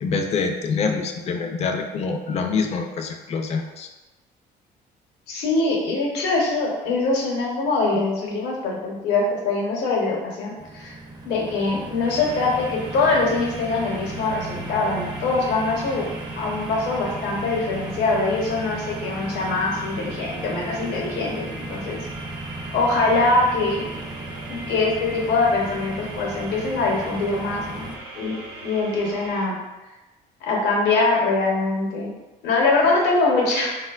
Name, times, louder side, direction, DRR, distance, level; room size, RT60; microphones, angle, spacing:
voice 1, 0.0-3.9, left 4 dB, 40° left, 4 dB, 0.3 m, -25 dB
voice 2, 5.3-11.0 11.2-16.1 16.4-22.0 22.7-23.9 24.5-28.3 28.6-29.6 30.4-32.1 32.4-33.7, left 3 dB, 85° left, -2 dB, 0.8 m, -23 dB
sound 1, 10.6-28.0, right 2 dB, 25° right, 0.4 m, -36 dB
sound 2, 12.0-29.5, right 2 dB, 70° right, 0.7 m, -39 dB
3.7 x 2.2 x 2.3 m, 1.1 s
cardioid pair, 110°, 17 cm